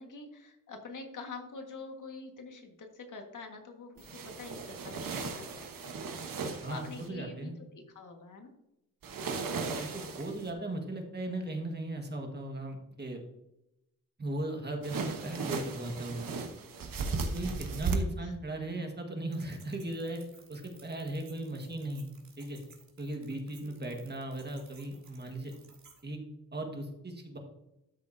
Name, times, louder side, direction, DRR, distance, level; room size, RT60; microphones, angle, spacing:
voice 1, 0.0-6.0 6.2-6.3 6.7-8.5 18.2-18.3 23.6-23.7, left 4 dB, 65° left, 3 dB, 1.7 m, -46 dB
sound 1, 4.0-7.1 9.0-10.5 14.8-18.0, right 4 dB, 80° right, 1.2 m, -36 dB
voice 2, 6.6-7.5 9.8-13.2 14.2-16.3 17.3-20.2 20.5-22.1 22.4-22.6 23.0-25.5 26.0-27.4, right 1 dB, 30° right, 3 dB, 1.6 m, -37 dB
sound 2, 19.3-26.0, right 5 dB, 60° right, 2.3 m, -59 dB
12.5 x 6.5 x 2.7 m, 0.87 s
wide cardioid pair, 120°, 33 cm